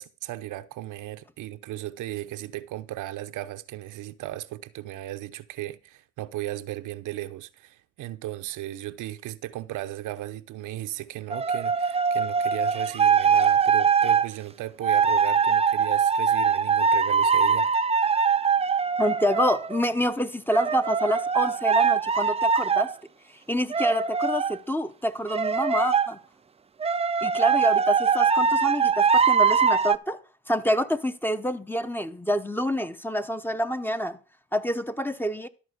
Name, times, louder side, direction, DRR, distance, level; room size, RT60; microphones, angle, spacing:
voice 1, 0.0-17.7, right 15 dB, 85° right, 0.8 m, -36 dB
sound 1, 11.3-14.3 14.8-19.8 20.5-22.9 23.7-24.6 25.3-26.1 26.8-30.0, right 6 dB, 20° right, 0.4 m, -22 dB
voice 2, 19.0-22.9 23.5-26.2 27.2-30.2 30.5-34.2 34.5-35.5, equal, 5° left, 0.8 m, -27 dB
13.0 x 4.4 x 8.0 m
cardioid pair, 90°, 30 cm